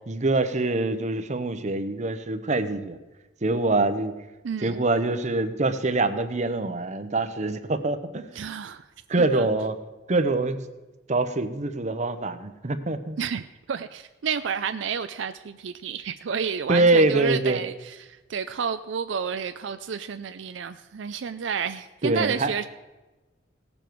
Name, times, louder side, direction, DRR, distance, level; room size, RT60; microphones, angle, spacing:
voice 1, 0.1-3.0 3.4-4.1 4.6-8.3 9.1-9.8 10.1-10.6 11.1-13.2 16.7-17.6 22.0-22.6, right 2 dB, 40° right, 10 dB, 0.8 m, -24 dB
voice 2, 4.4-4.8 8.4-8.9 9.2-9.5 13.2-22.7, right 6 dB, 75° right, 10 dB, 0.4 m, -30 dB
17.5 x 7.1 x 4.6 m, 1.1 s
head